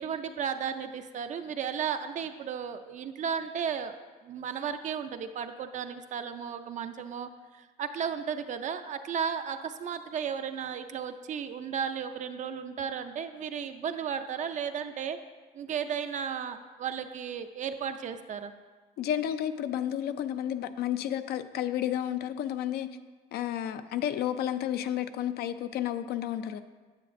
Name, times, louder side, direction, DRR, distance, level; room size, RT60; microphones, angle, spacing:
voice 1, 0.0-3.9 4.2-15.2 15.5-18.5, right 7 dB, 45° right, 9 dB, 0.4 m, -34 dB
voice 2, 19.0-22.9 23.3-26.6, left 11 dB, 70° left, 10 dB, 0.5 m, -31 dB
9.1 x 7.5 x 2.5 m, 1.4 s
cardioid pair, 110°, 17 cm